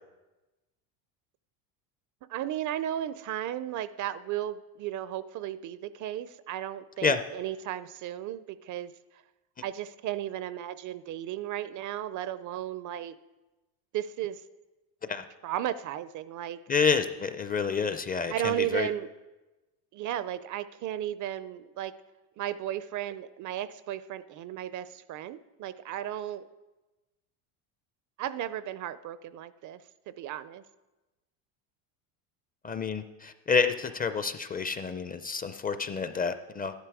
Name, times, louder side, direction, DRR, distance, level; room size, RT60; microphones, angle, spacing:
voice 1, 2.3-8.9 9.6-13.2 13.9-14.4 15.4-16.6 18.3-19.1 19.9-21.9 22.4-26.4 28.2-29.8 30.1-30.6, right 12 dB, 40° right, 16 dB, 0.5 m, -34 dB
voice 2, 16.7-18.9 32.6-36.7, left 5 dB, 20° left, 10 dB, 0.4 m, -28 dB
12.5 x 11.5 x 4.7 m, 1.1 s
cardioid pair, 125°, 46 cm